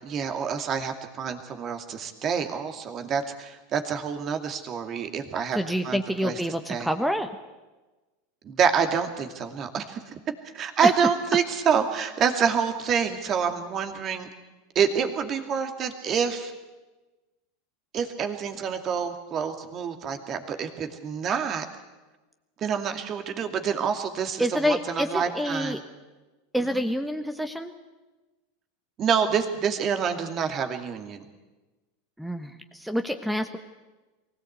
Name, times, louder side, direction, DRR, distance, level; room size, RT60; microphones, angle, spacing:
voice 1, 0.0-5.6 5.8-6.4 6.7-6.9 8.4-10.1 10.5-14.3 14.7-16.5 17.9-21.7 22.6-25.8 26.7-26.8 29.0-31.2, right 7 dB, 40° right, 6 dB, 2.5 m, -27 dB
voice 2, 5.5-7.3 10.8-10.9 24.4-25.8 26.5-27.7 32.2-33.6, equal, ahead, 8 dB, 1.3 m, -27 dB
23.0 x 17.0 x 8.2 m, 1.2 s
hypercardioid pair, 85°, 0 cm